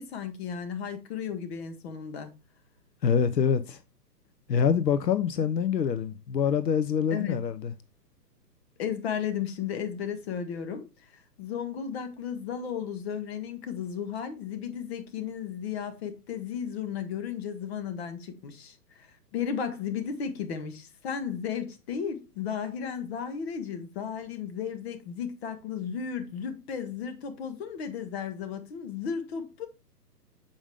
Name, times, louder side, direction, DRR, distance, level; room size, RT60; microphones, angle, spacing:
voice 1, 0.0-2.3 7.1-7.4 8.8-29.7, left 7 dB, 40° left, 1.5 m, -34 dB
voice 2, 3.0-3.8 4.5-7.7, left 7 dB, 85° left, 0.8 m, -25 dB
7.1 x 5.2 x 3.5 m
hypercardioid pair, 135°, 49 cm